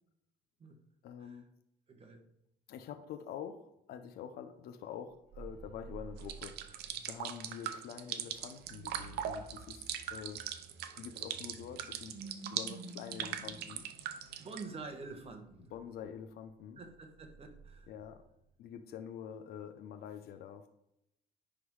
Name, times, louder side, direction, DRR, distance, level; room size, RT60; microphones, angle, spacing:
voice 1, 1.0-1.4 2.7-10.4 11.0-12.1 12.5-13.8 15.7-16.8 17.9-18.2 18.6-20.7, left 8 dB, 70° left, 7 dB, 0.7 m, -46 dB
voice 2, 1.9-2.2 14.4-15.7 16.8-17.9, right 3 dB, 35° right, 4 dB, 1.5 m, -47 dB
sound 1, 5.1-18.6, right 4 dB, 55° right, 2.0 m, -53 dB
sound 2, 6.2-14.6, right 10 dB, 75° right, 0.7 m, -40 dB
9.9 x 3.8 x 4.7 m, 0.80 s
cardioid pair, 110°, 17 cm